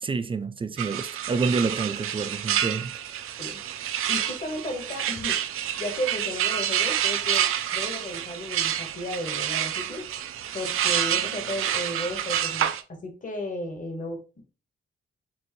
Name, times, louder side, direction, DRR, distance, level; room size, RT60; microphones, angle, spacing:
voice 1, 0.0-2.9, right 4 dB, 25° right, 0.3 m, -28 dB
sound 1, 0.8-12.8, right 10 dB, 85° right, 0.4 m, -28 dB
voice 2, 4.1-5.4 5.8-7.4 7.7-10.1 10.5-14.4, left 1 dB, 40° left, 1.2 m, -34 dB
4.4 x 2.6 x 3.0 m
cardioid pair, 115°, 21 cm